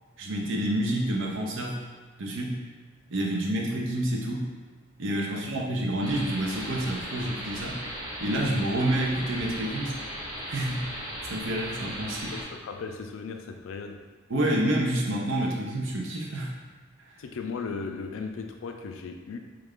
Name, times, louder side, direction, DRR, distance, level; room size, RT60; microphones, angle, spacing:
voice 1, 0.2-1.8 2.2-2.6 3.1-4.5 5.0-7.8 8.2-10.0 10.5-11.0 11.3-12.3 14.3-16.5, right 1 dB, 70° right, -1 dB, 0.6 m, -28 dB
sound 1, 6.0-12.4, equal, 20° right, 0.8 m, -37 dB
voice 2, 12.3-14.0 17.2-19.4, left 4 dB, 85° left, 5 dB, 0.4 m, -36 dB
3.2 x 2.4 x 3.5 m, 1.5 s
head